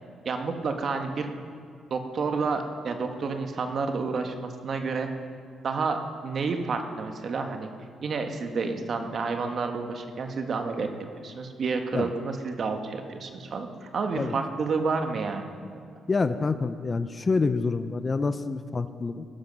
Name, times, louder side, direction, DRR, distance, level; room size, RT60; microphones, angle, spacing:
voice 1, 0.2-1.3 1.9-5.1 5.6-7.7 8.0-10.9 11.2-15.5, right 4 dB, 50° right, 5 dB, 1.6 m, -30 dB
voice 2, 16.1-19.2, left 4 dB, 30° left, 11 dB, 0.6 m, -27 dB
18.5 x 12.0 x 5.4 m, 2.3 s
cardioid pair, 90°, 0 cm